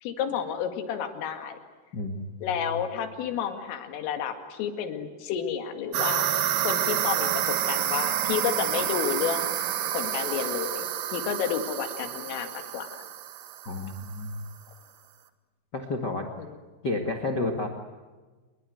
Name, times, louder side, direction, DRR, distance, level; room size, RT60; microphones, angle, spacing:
voice 1, 0.0-1.6 2.4-6.2 6.6-9.6 9.9-12.9 16.4-16.5, left 8 dB, 85° left, 7 dB, 4.7 m, -31 dB
voice 2, 1.9-2.5 13.6-14.5 15.7-16.2 16.8-17.7, left 2 dB, 70° left, 3 dB, 1.0 m, -31 dB
sound 1, 5.9-14.1, right 11 dB, 70° right, 2.2 m, -29 dB
28.0 x 22.0 x 7.9 m, 1.3 s
omnidirectional pair, 5.7 m